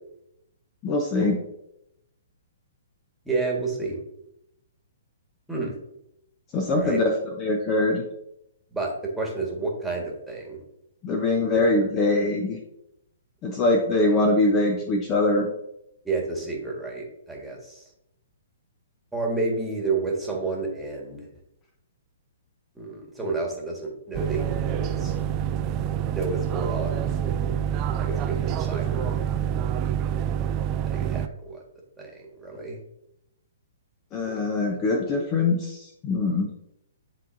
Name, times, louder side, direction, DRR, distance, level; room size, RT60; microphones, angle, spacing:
voice 1, 0.8-1.4 6.5-7.1 7.4-8.0 11.0-12.6 13.4-15.5 34.1-36.5, left 2 dB, 30° left, 3 dB, 0.8 m, -23 dB
voice 2, 3.2-4.0 5.5-5.7 6.7-7.0 8.7-10.6 11.5-11.6 16.0-17.8 19.1-21.3 22.7-25.1 26.1-27.0 28.0-29.2 30.8-31.6 32.0-32.8 34.2-34.4 34.7-34.8, right 3 dB, 5° right, -2 dB, 1.7 m, -30 dB
sound 1, 24.1-31.3, right 9 dB, 30° right, 0.4 m, -27 dB
10.0 x 3.9 x 2.7 m, 0.81 s
figure-of-eight pair, 120°, 0 cm